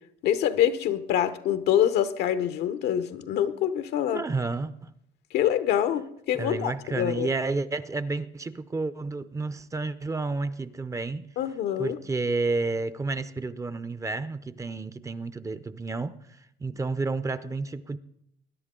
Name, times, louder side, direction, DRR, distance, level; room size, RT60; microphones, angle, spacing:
voice 1, 0.2-4.2 5.3-7.3 11.4-12.0, left 10 dB, 80° left, 0.9 m, -25 dB
voice 2, 4.1-4.9 6.4-11.2 11.8-16.2 16.6-18.0, right 3 dB, 20° right, 0.5 m, -30 dB
21.0 x 10.5 x 3.7 m
cardioid pair, 110°, 17 cm